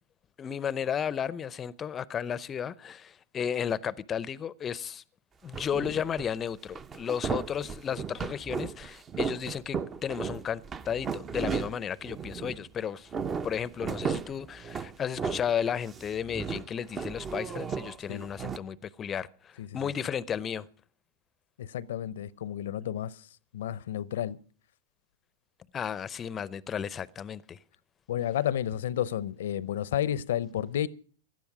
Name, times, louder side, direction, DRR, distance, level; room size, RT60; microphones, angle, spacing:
voice 1, 0.4-5.0 5.4-13.1 13.4-20.7 25.7-27.6, left 8 dB, 25° left, 0.6 m, -33 dB
sound 1, 5.5-6.3 6.7-12.7 13.0-15.6 15.9-18.6, right 6 dB, 25° right, 0.7 m, -35 dB
voice 2, 21.6-23.1 23.5-24.4 28.1-30.9, left 11 dB, 65° left, 0.7 m, -31 dB
17.0 x 12.0 x 4.8 m
hypercardioid pair, 100°, 0 cm